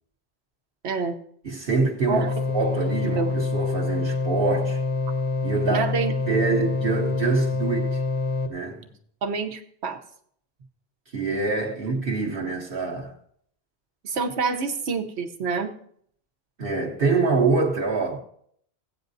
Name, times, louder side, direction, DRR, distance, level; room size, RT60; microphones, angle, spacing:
voice 1, 0.8-1.2 2.1-2.3 3.0-3.3 5.7-6.1 6.5-6.7 9.2-10.0 14.0-15.7, right 4 dB, 85° right, 1.1 m, -27 dB
voice 2, 1.4-2.3 2.5-4.8 5.4-5.9 6.3-8.0 8.5-8.9 11.1-13.2 16.6-18.2, right 4 dB, 60° right, 1.1 m, -25 dB
sound 1, 2.1-8.5, left 3 dB, 85° left, 1.3 m, -26 dB
16.0 x 8.8 x 2.6 m
omnidirectional pair, 1.1 m